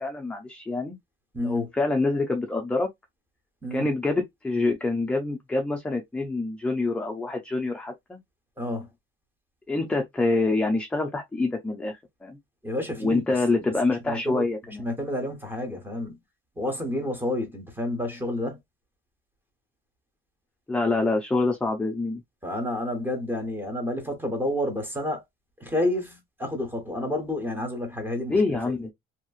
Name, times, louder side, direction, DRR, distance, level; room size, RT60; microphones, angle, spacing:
voice 1, 0.0-1.0 1.4-2.9 3.7-8.2 9.7-12.4 13.0-14.8 20.7-22.2 28.3-28.9, left 3 dB, 5° left, 0.4 m, -26 dB
voice 2, 1.3-1.7 3.6-3.9 8.6-8.9 12.6-13.7 14.0-14.4 14.8-16.2 16.6-18.6 22.4-25.2 25.6-28.8, left 1 dB, 10° right, 1.0 m, -30 dB
2.9 x 2.7 x 2.4 m
cardioid pair, 150°, 21 cm